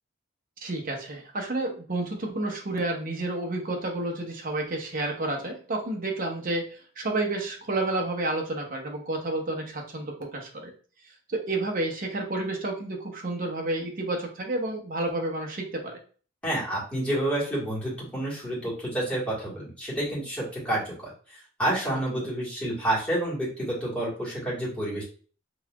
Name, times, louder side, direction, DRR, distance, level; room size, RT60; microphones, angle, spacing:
voice 1, 0.6-10.7 11.3-16.0 22.2-22.3, right 2 dB, 40° right, 1 dB, 0.8 m, -30 dB
voice 2, 16.4-21.1 21.6-25.0, right 1 dB, 5° left, -7 dB, 1.6 m, -29 dB
4.0 x 2.8 x 2.3 m, 0.40 s
head